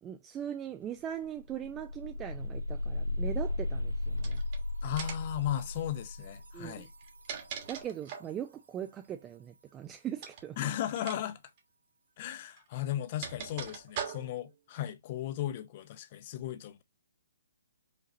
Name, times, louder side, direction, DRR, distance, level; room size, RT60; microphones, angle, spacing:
voice 1, 0.0-4.4 6.5-6.9 7.7-10.6, right 10 dB, 20° right, 0.4 m, -40 dB
sound 1, 0.8-0.9 1.2-8.0, left 2 dB, 90° right, 0.8 m, -36 dB
sound 2, 4.2-4.6 5.0-5.4 6.9-8.4 10.2-10.5 11.0-11.2 11.5-11.6 12.6-14.5, right 7 dB, 40° right, 1.3 m, -41 dB
voice 2, 4.8-6.9 10.6-11.4 12.2-16.8, left 12 dB, 40° left, 0.6 m, -36 dB
5.0 x 2.9 x 2.5 m
hypercardioid pair, 140°, 0 cm